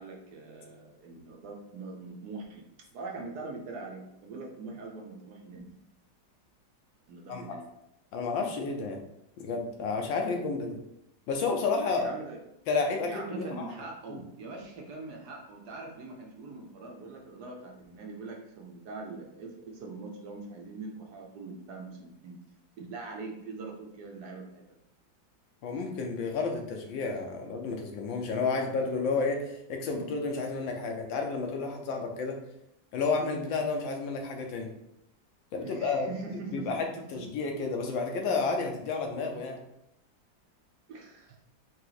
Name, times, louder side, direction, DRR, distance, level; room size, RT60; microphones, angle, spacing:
voice 1, 0.0-2.6 2.9-5.8 7.1-7.6 12.0-12.4 13.1-22.4 22.8-24.6 35.6-37.2 40.9-41.4, right 3 dB, 65° right, 1 dB, 1.2 m, -42 dB
voice 2, 8.1-9.0 9.4-10.8 11.3-12.1 12.7-13.7 14.1-14.2 25.6-32.4 32.9-34.7 35.5-36.1 36.5-36.9 37.1-39.6, left 4 dB, 80° left, 2 dB, 1.5 m, -31 dB
4.6 x 3.0 x 3.9 m, 0.81 s
omnidirectional pair, 2.0 m